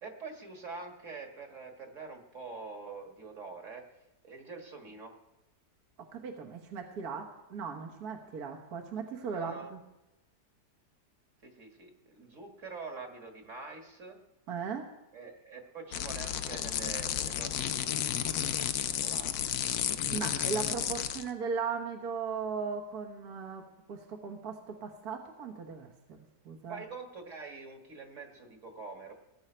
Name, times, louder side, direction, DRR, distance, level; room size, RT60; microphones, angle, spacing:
voice 1, 0.0-3.9 4.2-5.1 9.2-9.7 11.4-14.2 15.1-19.5 26.7-29.1, right 4 dB, 45° right, 3 dB, 1.9 m, -45 dB
voice 2, 6.1-9.8 14.5-14.9 20.1-26.8, right 5 dB, 65° right, 2 dB, 1.8 m, -38 dB
sound 1, 15.9-21.3, left 10 dB, 70° left, 1.1 m, -32 dB
19.0 x 9.7 x 4.5 m, 0.98 s
omnidirectional pair, 1.8 m